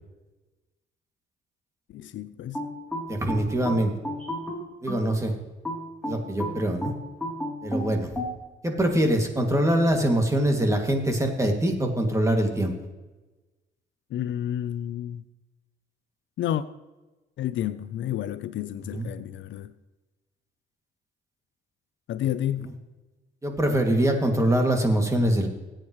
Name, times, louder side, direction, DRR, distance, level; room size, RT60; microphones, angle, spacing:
voice 1, 1.9-2.6 14.1-15.2 16.4-16.6 17.4-19.7 22.1-22.7, left 11 dB, 70° left, 0.6 m, -30 dB
sound 1, 2.5-5.1 5.6-8.4, equal, 5° left, 3.3 m, -32 dB
voice 2, 3.1-3.9 4.8-5.3 6.0-6.9 7.6-8.1 8.6-12.7 18.9-19.1 23.4-25.5, right 1 dB, 15° right, 2.4 m, -23 dB
19.5 x 9.0 x 3.2 m
cardioid pair, 90°, 20 cm